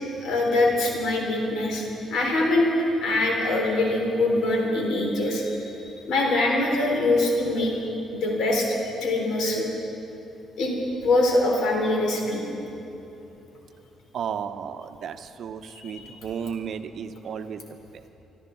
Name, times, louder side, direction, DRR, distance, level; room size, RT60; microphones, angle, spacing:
voice 1, 0.2-1.9 2.1-2.7 3.0-7.7 8.1-8.7 9.0-9.7 10.6-10.7 11.0-12.4 15.7-16.1, left 2 dB, 75° left, -1 dB, 3.5 m, -23 dB
voice 2, 14.1-18.1, right 7 dB, 60° right, 9 dB, 0.7 m, -34 dB
26.5 x 12.5 x 3.9 m, 3.0 s
cardioid pair, 95°, 0 cm